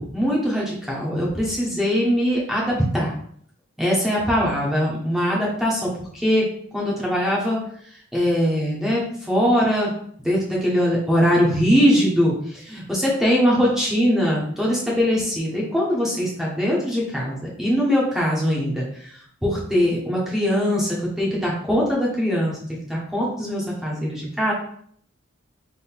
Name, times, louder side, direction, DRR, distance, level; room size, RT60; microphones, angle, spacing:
voice 1, 0.0-3.1 3.8-6.4 6.7-7.6 8.1-9.9 10.2-18.8 19.4-22.6 22.9-24.5, equal, ahead, -5 dB, 1.2 m, -21 dB
3.8 x 3.0 x 4.5 m, 0.63 s
head